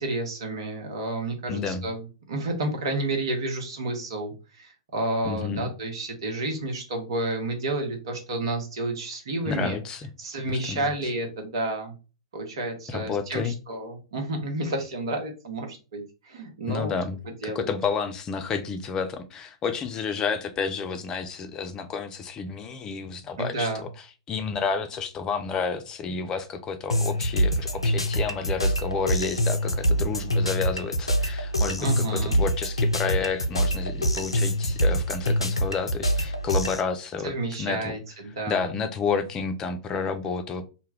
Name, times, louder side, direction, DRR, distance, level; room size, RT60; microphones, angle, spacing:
voice 1, 0.0-9.8 10.2-11.9 12.3-17.0 17.2-17.7 23.4-23.8 31.8-32.4 37.2-38.7, right 2 dB, 65° right, 0.9 m, -30 dB
voice 2, 1.5-1.9 5.2-5.7 9.5-10.1 10.5-10.9 12.9-13.6 16.7-17.2 17.4-23.7 24.3-37.3 37.6-37.9 38.5-40.7, left 5 dB, 25° left, 0.5 m, -30 dB
sound 1, 26.9-36.8, equal, 90° left, 0.4 m, -25 dB
2.2 x 2.1 x 3.4 m
figure-of-eight pair, 105°, 3 cm